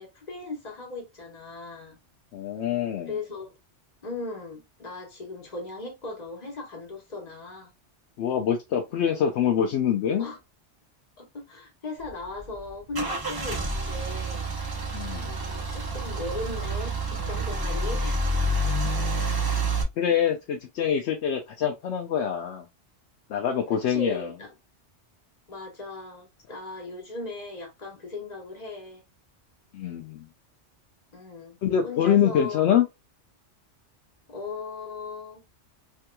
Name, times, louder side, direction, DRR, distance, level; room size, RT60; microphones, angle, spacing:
voice 1, 0.0-2.0 3.1-3.5 4.0-7.7 10.2-10.4 11.2-14.5 15.2-18.8 23.7-24.5 25.5-29.0 31.1-31.6 31.8-32.6 34.3-35.4, left 3 dB, 35° left, 1.2 m, -38 dB
voice 2, 2.3-3.2 8.2-10.3 14.9-15.3 20.0-22.7 23.3-24.3 29.7-30.3 31.6-32.9, left 9 dB, 70° left, 0.8 m, -25 dB
Car / Engine starting / Idling, 12.0-19.8, right 2 dB, 25° right, 0.5 m, -28 dB
3.4 x 2.9 x 2.2 m
omnidirectional pair, 1.2 m